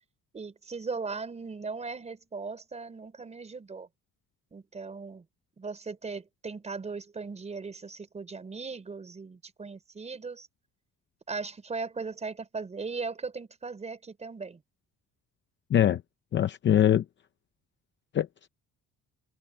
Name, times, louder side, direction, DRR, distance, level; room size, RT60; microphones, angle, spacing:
voice 1, 0.3-3.9 4.5-5.2 5.6-10.5 11.3-14.6, right 4 dB, 20° right, 5.1 m, -38 dB
voice 2, 15.7-16.0 16.3-17.0 18.1-18.5, left 10 dB, 35° left, 0.6 m, -23 dB
cardioid pair, 180°, 32 cm